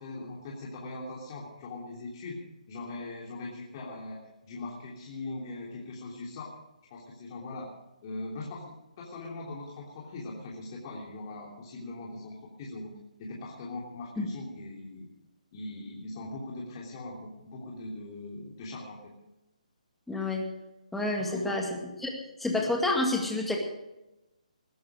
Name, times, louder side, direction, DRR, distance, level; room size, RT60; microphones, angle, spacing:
voice 1, 0.0-2.4 2.7-6.5 6.9-7.7 8.0-15.1 15.5-19.1 21.3-21.6, left 2 dB, 35° left, -3 dB, 3.2 m, -41 dB
voice 2, 20.1-20.5 20.9-21.6 22.0-22.1 22.4-23.6, left 2 dB, 5° left, 1 dB, 2.1 m, -28 dB
19.5 x 11.5 x 5.0 m, 0.97 s
hypercardioid pair, 155°, 4 cm